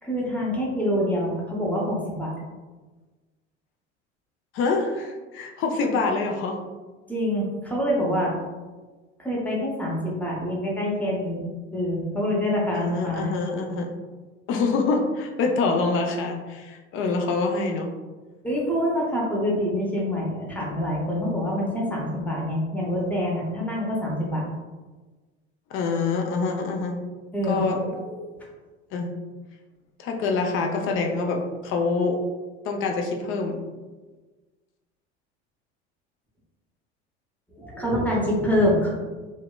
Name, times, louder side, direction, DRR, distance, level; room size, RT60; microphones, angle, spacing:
voice 1, 0.0-2.3 7.1-8.3 9.2-11.5 11.7-13.3 18.4-24.5 27.3-28.5 37.5-38.9, equal, 5° left, -4 dB, 0.7 m, -26 dB
voice 2, 4.5-6.6 12.7-13.9 14.5-17.9 25.7-27.0 27.5-27.8 28.9-29.1 30.0-32.2 32.6-33.6, left 4 dB, 40° left, 3 dB, 0.4 m, -25 dB
2.7 x 2.2 x 2.2 m, 1.3 s
figure-of-eight pair, 70°, 35 cm